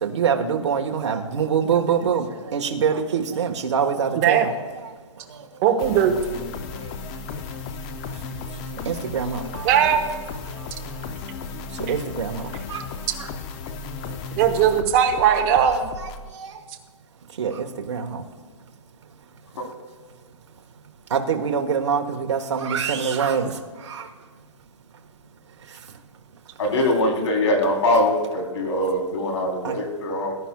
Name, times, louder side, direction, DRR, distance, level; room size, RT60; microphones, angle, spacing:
voice 1, 0.0-4.5 5.3-5.4 8.1-8.3 8.8-9.7 10.5-10.7 11.8-12.8 16.3-16.6 17.4-18.2 21.1-24.1 29.6-29.7, right 7 dB, 60° right, 3 dB, 1.2 m, -25 dB
voice 2, 4.1-4.5 5.6-6.2 9.6-10.0 14.3-15.9, right 9 dB, 25° right, 5 dB, 1.0 m, -19 dB
sound 1, 5.8-16.3, left 4 dB, 15° left, 0.4 m, -35 dB
voice 3, 26.6-30.4, left 1 dB, 55° left, 2 dB, 3.2 m, -22 dB
19.5 x 10.5 x 2.2 m, 1.5 s
hypercardioid pair, 160°, 17 cm